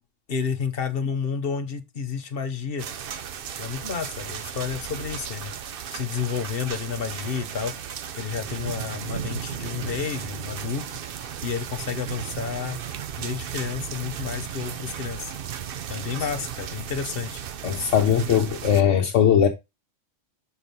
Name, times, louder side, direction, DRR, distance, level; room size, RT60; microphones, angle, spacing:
voice 1, 0.3-2.9 3.6-5.5 5.9-7.8 8.2-12.8 13.2-15.3 15.9-17.4, left 6 dB, 55° left, 1.1 m, -30 dB
sound 1, 2.8-18.8, right 9 dB, 60° right, 0.7 m, -35 dB
voice 2, 17.6-19.5, left 9 dB, 85° left, 1.3 m, -19 dB
5.9 x 4.7 x 5.2 m
omnidirectional pair, 1.2 m